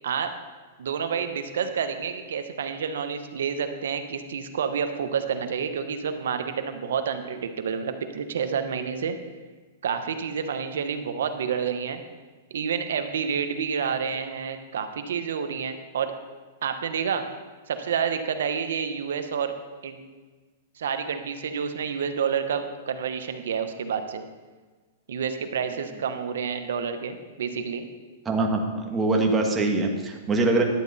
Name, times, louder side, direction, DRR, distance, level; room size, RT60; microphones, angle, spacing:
voice 1, 0.0-0.3 0.8-9.2 9.8-12.0 12.5-16.1 16.6-17.3 17.7-19.5 19.8-20.0 20.8-24.3 25.1-27.9, right 7 dB, 80° right, 8 dB, 1.0 m, -29 dB
voice 2, 28.2-30.6, right 2 dB, 15° right, 1 dB, 1.4 m, -23 dB
11.0 x 8.5 x 4.1 m, 1.3 s
hypercardioid pair, 135°, 0 cm